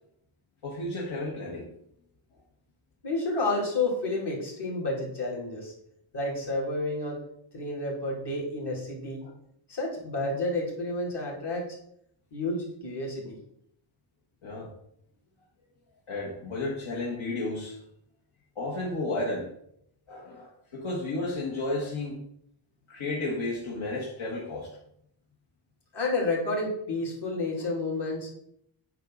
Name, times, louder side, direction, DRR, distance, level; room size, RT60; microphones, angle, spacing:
voice 1, 0.6-1.7 9.2-9.3 14.4-14.7 16.1-17.8 18.5-19.5 20.1-22.2 22.9-24.8, left 2 dB, 85° left, -3 dB, 1.6 m, -32 dB
voice 2, 3.0-5.7 6.1-7.2 7.5-9.2 9.7-11.7 12.3-13.4 25.9-28.3, left 2 dB, 60° left, -2 dB, 2.9 m, -30 dB
9.0 x 5.5 x 3.9 m, 0.71 s
wide cardioid pair, 140°, 46 cm